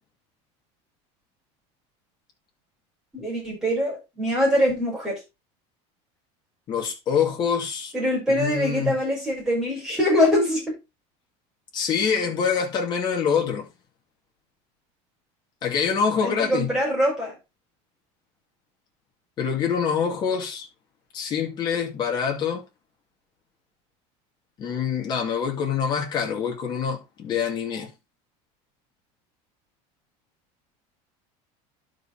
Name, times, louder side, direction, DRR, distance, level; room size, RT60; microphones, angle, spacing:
voice 1, 3.1-5.2 7.9-10.6 16.2-17.3, equal, 5° right, 6.1 m, -23 dB
voice 2, 6.7-7.9 8.3-9.0 11.7-13.7 15.6-16.8 19.4-20.7 21.1-22.6 24.6-27.9, left 7 dB, 30° left, 2.6 m, -25 dB
11.5 x 5.5 x 4.3 m
cardioid pair, 175°, 15 cm